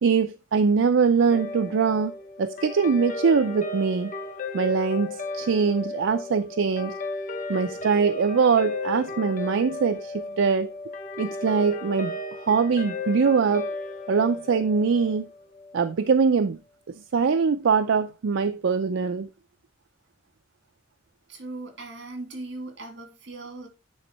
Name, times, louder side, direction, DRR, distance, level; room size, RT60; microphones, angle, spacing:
voice 1, 0.0-4.1 4.5-7.0 7.5-10.7 11.2-12.2 12.5-13.7 14.1-15.3 15.7-16.6 16.9-19.3, right 5 dB, 80° right, 0.4 m, -23 dB
Guitar, 1.3-15.9, left 3 dB, 40° left, 0.9 m, -35 dB
voice 2, 21.3-23.7, right 2 dB, 60° right, 2.1 m, -38 dB
9.5 x 3.5 x 4.2 m
head